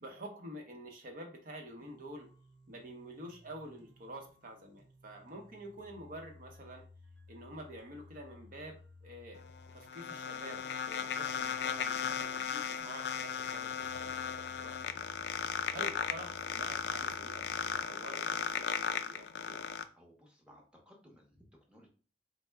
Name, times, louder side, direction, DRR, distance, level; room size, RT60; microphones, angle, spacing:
voice 1, 0.0-2.3 2.7-6.8 7.3-9.4 9.7-15.1 15.7-19.6, right 1 dB, 50° right, 3 dB, 0.7 m, -48 dB
sound 1, 1.8-17.8, left 2 dB, 90° right, 1.0 m, -58 dB
sound 2, 9.4-19.8, left 7 dB, 70° left, 0.3 m, -36 dB
voice 2, 19.8-21.9, equal, 5° right, -1 dB, 0.7 m, -60 dB
4.3 x 2.0 x 3.3 m, 0.39 s
head